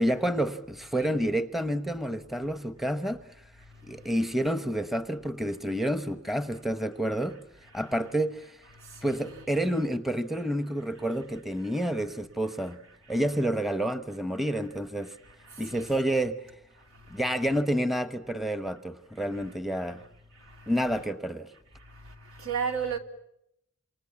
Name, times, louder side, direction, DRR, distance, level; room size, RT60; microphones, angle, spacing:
voice 1, 0.0-3.2 3.9-7.4 7.7-8.6 9.0-12.8 13.1-15.1 15.6-16.4 17.1-20.0 20.7-21.5, right 1 dB, ahead, 1.0 m, -29 dB
voice 2, 8.9-9.4 15.7-15.9 22.4-23.0, right 6 dB, 75° right, 3.1 m, -32 dB
28.0 x 28.0 x 7.1 m
head